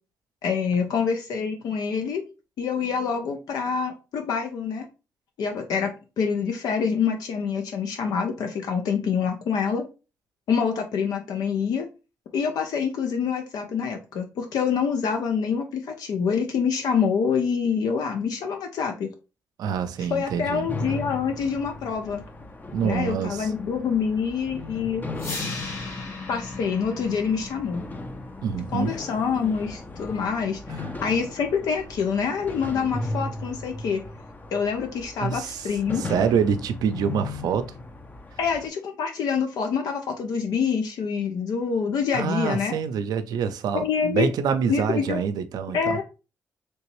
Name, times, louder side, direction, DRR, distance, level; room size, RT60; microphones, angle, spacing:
voice 1, 0.4-2.2 2.6-4.9 5.4-5.9 6.2-9.8 10.5-11.9 12.3-19.1 20.1-22.2 22.8-25.0 26.3-27.8 28.7-30.6 31.0-34.0 34.5-36.0 38.4-42.7 43.7-44.3 44.7-45.2 45.7-46.0, left 6 dB, 75° left, 0.5 m, -26 dB
voice 2, 19.6-20.7 22.7-23.5 25.4-25.5 28.4-29.0 35.2-35.7 36.0-37.7 42.1-46.0, right 7 dB, 75° right, 0.4 m, -26 dB
sound 1, 20.7-38.7, left 2 dB, 25° left, 0.6 m, -37 dB
sound 2, 25.2-31.2, left 3 dB, 45° left, 1.6 m, -39 dB
3.2 x 2.9 x 3.0 m
supercardioid pair, 60°, 7 cm